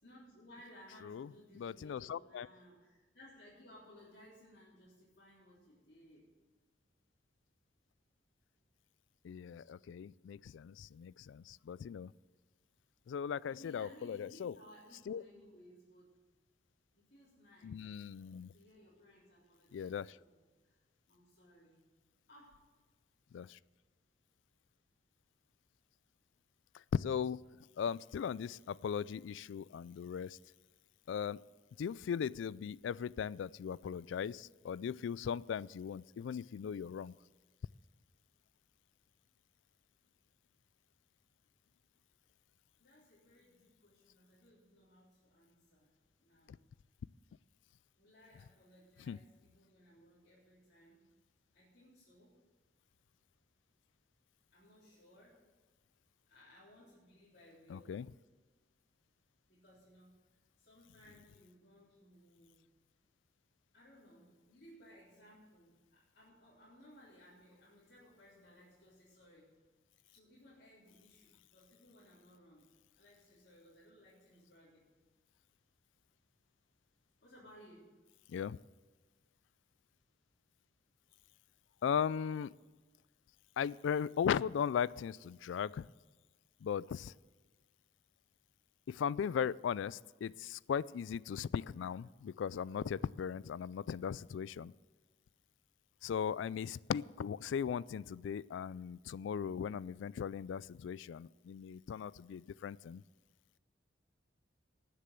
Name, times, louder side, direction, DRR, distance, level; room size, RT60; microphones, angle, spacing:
voice 1, 0.0-6.3 13.5-16.1 16.9-17.8 18.5-21.8 22.3-22.6 42.8-45.9 46.2-46.6 48.0-51.0 51.5-52.4 54.5-55.4 56.3-58.0 59.5-62.6 63.7-69.5 70.1-72.7 72.9-74.9 77.2-77.9, equal, 55° left, -9 dB, 3.6 m, -61 dB
voice 2, 1.6-2.5 9.2-12.1 13.1-14.5 15.1-15.2 17.6-18.5 19.7-20.2 23.3-23.6 26.7-27.4 27.8-30.4 31.1-31.4 31.8-37.1 49.1-49.2 57.7-58.1 78.3-78.6 81.8-82.5 83.6-85.9 86.6-87.1 88.9-94.7 96.0-103.0, left 7 dB, 80° left, 21 dB, 0.3 m, -38 dB
19.0 x 6.8 x 6.8 m, 1.3 s
head